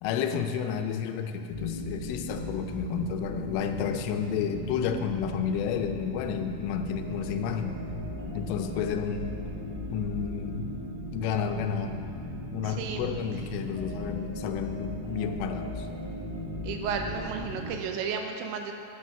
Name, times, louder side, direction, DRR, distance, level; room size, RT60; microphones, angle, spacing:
voice 1, 0.0-7.8 8.3-9.5 9.9-10.7 11.1-12.0 12.5-15.9, left 7 dB, 85° left, 6 dB, 3.2 m, -31 dB
sound 1, 1.5-17.7, equal, 10° right, 2.3 m, -37 dB
voice 2, 12.7-13.2 16.6-18.7, right 6 dB, 80° right, 4 dB, 2.8 m, -33 dB
9.6 x 9.4 x 6.3 m, 2.5 s
omnidirectional pair, 5.6 m